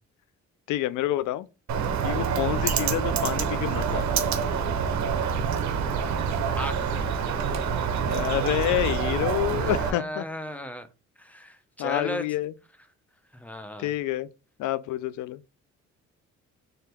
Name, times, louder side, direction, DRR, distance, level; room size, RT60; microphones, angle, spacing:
voice 1, 0.7-1.5 2.0-4.3 8.0-10.2 11.8-12.5 13.8-14.3 14.6-15.4, left 14 dB, 80° left, 0.5 m, -28 dB
Bird, 1.7-9.9, right 6 dB, 65° right, 0.9 m, -26 dB
voice 2, 6.5-6.9 9.6-10.9 11.2-12.2 13.3-13.9, equal, 5° left, 0.8 m, -35 dB
4.0 x 2.8 x 3.5 m
cardioid pair, 90°, 30 cm